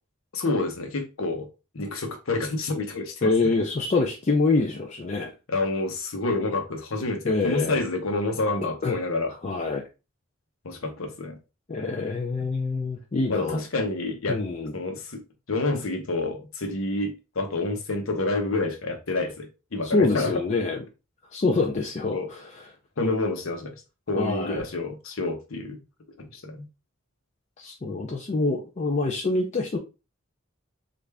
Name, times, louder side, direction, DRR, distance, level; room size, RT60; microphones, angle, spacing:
voice 1, 0.3-1.5 1.7-3.3 5.5-9.3 10.6-11.4 12.4-12.5 13.3-14.4 14.7-15.2 15.5-20.3 22.1-22.3 23.0-23.8 24.1-25.8 26.2-26.7, left 2 dB, 85° left, 0.9 m, -28 dB
voice 2, 3.2-5.3 7.2-7.8 8.8-9.0 9.4-9.8 11.7-13.6 14.3-14.7 19.8-20.8 21.3-22.4 24.1-24.6 27.6-29.8, left 3 dB, 35° left, 0.4 m, -25 dB
3.3 x 2.5 x 3.3 m
head